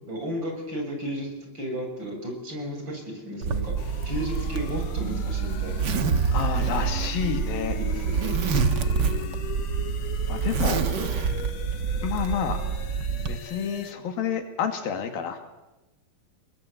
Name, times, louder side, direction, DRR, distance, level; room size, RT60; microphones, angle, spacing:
voice 1, 0.0-3.7 4.1-5.8 6.8-6.9 7.8-8.3, equal, 30° right, 2 dB, 7.6 m, -34 dB
Zipper (clothing), 3.4-13.3, right 5 dB, 70° right, 1.0 m, -27 dB
sound 1, 3.8-13.9, left 8 dB, 65° left, 3.1 m, -41 dB
voice 2, 6.3-7.8 8.8-9.5 10.3-10.8 12.0-12.6 13.3-15.4, left 7 dB, 80° left, 6 dB, 4.1 m, -30 dB
30.0 x 21.5 x 8.1 m, 1.0 s
omnidirectional pair, 4.2 m